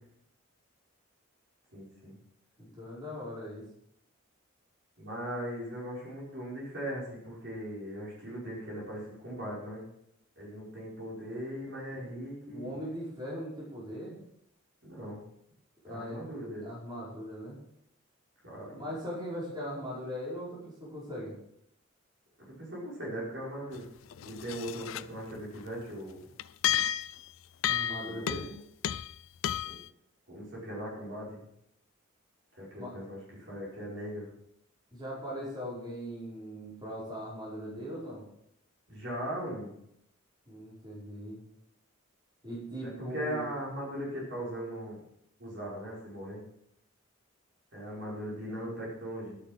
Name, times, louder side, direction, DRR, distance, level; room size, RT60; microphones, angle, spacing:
voice 1, 1.7-2.2 5.0-9.9 10.4-12.8 14.8-15.2 15.8-16.7 18.4-18.8 22.4-23.9 24.2-26.2 28.0-28.4 29.6-29.8 30.3-31.5 32.6-34.3 38.9-39.8 42.8-45.0 45.4-46.4 47.7-49.4, equal, 55° right, -5 dB, 5.5 m, -39 dB
voice 2, 2.6-3.6 11.9-12.2 12.5-14.2 15.8-16.3 16.6-17.6 18.7-21.3 27.7-28.5 32.8-32.9 34.9-38.2 40.5-41.4 42.4-43.5, equal, 20° right, -7 dB, 5.2 m, -40 dB
sound 1, 23.7-23.8 24.1-25.0 25.3-25.4 26.4-27.2 27.6-28.6 28.8-29.1 29.4-29.8, left 10 dB, 70° left, 0.4 m, -32 dB
12.0 x 8.8 x 6.2 m, 0.75 s
head